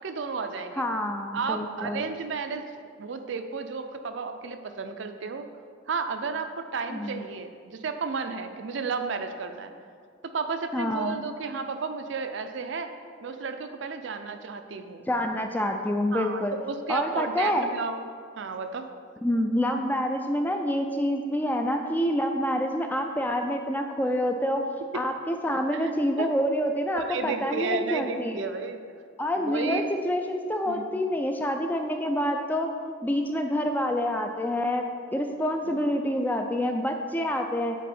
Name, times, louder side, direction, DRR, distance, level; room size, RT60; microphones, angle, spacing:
voice 1, 0.0-0.9 1.3-2.6 3.0-5.5 5.9-9.7 10.2-12.9 13.2-15.0 16.1-18.1 18.4-18.9 25.7-25.9 26.2-26.3 26.9-28.8 29.4-29.8 30.7-30.8 35.7-35.8, right 5 dB, 65° right, 7 dB, 0.5 m, -32 dB
voice 2, 0.8-2.1 6.9-7.2 10.7-11.2 15.1-16.6 16.9-17.7 19.2-24.6 24.9-28.4 29.2-32.7 33.0-37.8, equal, 10° left, 4 dB, 0.3 m, -27 dB
8.2 x 4.6 x 4.3 m, 2.1 s
head